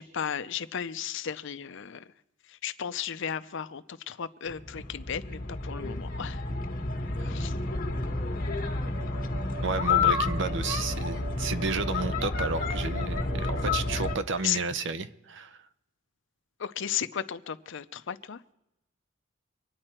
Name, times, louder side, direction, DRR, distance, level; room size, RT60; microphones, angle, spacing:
voice 1, 0.0-2.0 2.5-6.4 7.2-7.5 14.4-14.6 16.6-18.4, left 9 dB, 65° left, 12 dB, 0.6 m, -34 dB
sound 1, 4.5-14.2, left 3 dB, 45° left, 1.6 m, -30 dB
sound 2, 8.8-14.2, right 6 dB, 85° right, 2.2 m, -43 dB
voice 2, 9.6-15.6, right 4 dB, 65° right, 12 dB, 0.7 m, -32 dB
25.0 x 9.8 x 4.4 m, 0.89 s
head